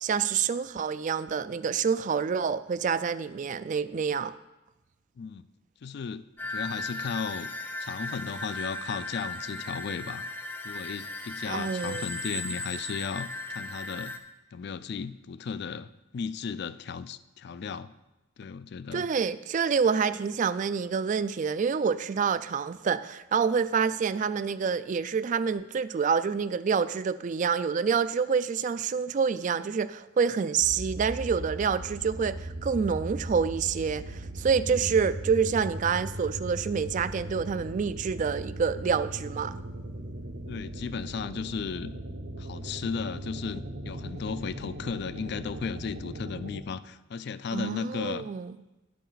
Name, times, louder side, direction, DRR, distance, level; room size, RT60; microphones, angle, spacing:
voice 1, 0.0-4.3 11.5-12.0 18.9-39.6 47.5-48.6, right 6 dB, 40° right, 14 dB, 0.3 m, -27 dB
voice 2, 5.2-5.5 5.8-7.5 7.8-10.2 10.6-14.2 14.5-15.9 16.1-17.9 18.4-19.1 34.7-35.0 40.5-41.9 42.4-48.3, left 5 dB, 55° left, 15 dB, 0.4 m, -35 dB
sound 1, 6.4-14.2, left 2 dB, 10° left, 0.6 m, -37 dB
sound 2, 30.6-46.6, right 1 dB, 70° right, 0.9 m, -38 dB
10.0 x 8.5 x 3.9 m, 1.0 s
head